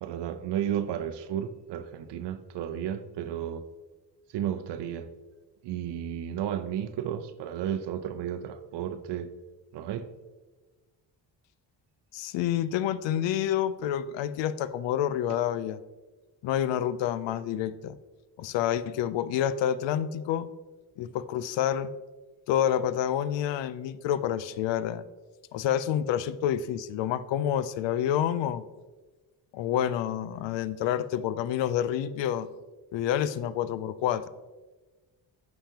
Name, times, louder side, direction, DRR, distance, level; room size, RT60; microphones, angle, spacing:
voice 1, 0.0-3.6 4.3-5.1 5.6-9.3 9.7-10.1, right 10 dB, 60° right, 11 dB, 0.6 m, -33 dB
voice 2, 12.1-15.8 16.4-18.0 18.4-20.5 21.0-21.9 22.5-25.0 25.5-28.7 29.5-32.5 32.9-34.3, left 10 dB, 65° left, 15 dB, 0.5 m, -28 dB
7.0 x 5.6 x 2.8 m, 1.2 s
supercardioid pair, 65°, 47 cm